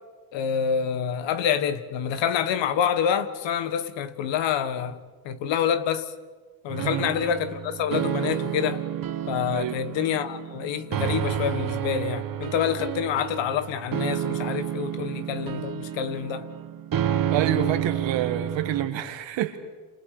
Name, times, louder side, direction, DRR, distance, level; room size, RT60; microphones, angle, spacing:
voice 1, 0.3-6.1 6.6-8.8 9.3-16.5, left 8 dB, 85° left, 1.6 m, -27 dB
sound 1, 6.7-18.9, right 10 dB, 50° right, 1.2 m, -30 dB
voice 2, 17.3-19.6, right 10 dB, 80° right, 2.0 m, -27 dB
29.0 x 28.0 x 5.1 m
supercardioid pair, 70°, 44 cm